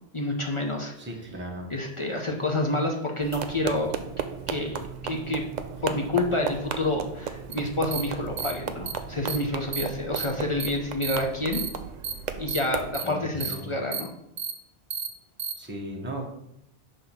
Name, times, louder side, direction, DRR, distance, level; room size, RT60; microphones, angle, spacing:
voice 1, 0.1-0.9 1.7-3.9 4.5-5.4 5.8-11.6 12.4-14.1, left 2 dB, 35° left, 1 dB, 0.6 m, -28 dB
voice 2, 1.0-1.7 13.0-13.7 15.6-16.3, right 1 dB, 10° right, 0 dB, 0.9 m, -37 dB
sound 1, 3.2-12.9, right 6 dB, 55° right, 0.5 m, -35 dB
sound 2, 7.5-7.6 7.9-8.0 8.4-8.5 8.9-9.0 9.3-9.4 9.7-9.8 10.2-10.3 10.6-10.7 11.0-11.2 11.5-11.7 12.0-12.1 12.5-12.6 12.9-13.0 13.4-13.5 13.9-14.0 14.4-14.5 14.9-15.1 15.4-15.5, right 7 dB, 80° right, 1.0 m, -31 dB
5.7 x 3.4 x 5.8 m, 0.80 s
omnidirectional pair, 1.1 m